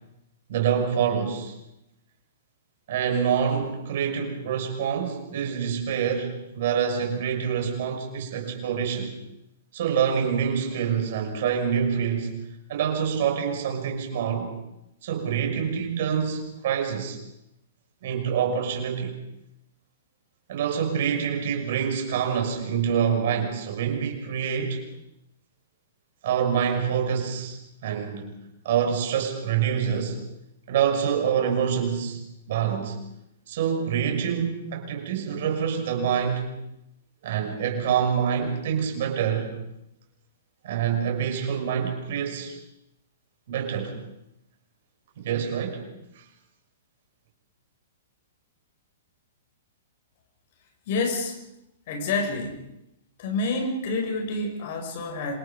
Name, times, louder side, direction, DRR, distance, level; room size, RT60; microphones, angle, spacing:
voice 1, 0.5-1.5 2.9-9.2 9.7-12.3 12.7-14.5 15.0-17.2 18.0-19.2 20.5-24.8 26.2-28.3 28.6-30.2 30.7-32.2 32.5-33.0 33.5-36.4 37.2-39.5 40.6-42.5 43.5-43.9 45.2-45.8 46.2-46.3, right 7 dB, 50° right, 3 dB, 6.3 m, -26 dB
voice 2, 50.9-51.4 51.9-52.6 53.2-55.3, left 3 dB, 50° left, 3 dB, 6.6 m, -28 dB
27.5 x 27.0 x 5.3 m, 0.87 s
figure-of-eight pair, 110°, 0 cm